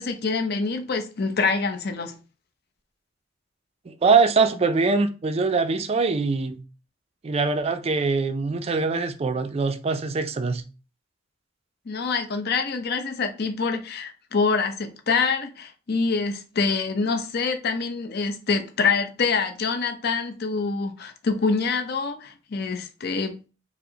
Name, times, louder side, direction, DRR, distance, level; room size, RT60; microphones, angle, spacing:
voice 1, 0.0-2.1 11.9-23.5, left 4 dB, 55° left, 0.6 m, -26 dB
voice 2, 3.9-6.6 7.2-10.6, right 4 dB, 30° right, 0.3 m, -23 dB
4.6 x 2.0 x 2.8 m
head